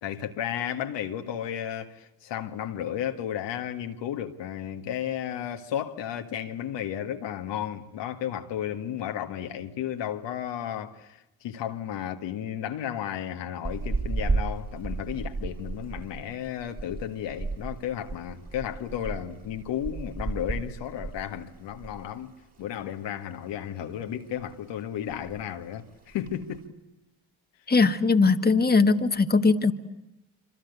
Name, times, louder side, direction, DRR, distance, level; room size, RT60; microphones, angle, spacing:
voice 1, 0.0-26.8, left 10 dB, 70° left, 1.9 m, -33 dB
sound 1, 13.6-22.2 22.4-22.6 23.0-23.9 24.2-24.6 24.8-24.9 25.1-25.6 26.1-26.6, right 3 dB, 35° right, 5.2 m, -34 dB
voice 2, 27.7-29.7, left 4 dB, 20° left, 1.7 m, -20 dB
26.5 x 25.0 x 8.2 m
hypercardioid pair, 50°, 44 cm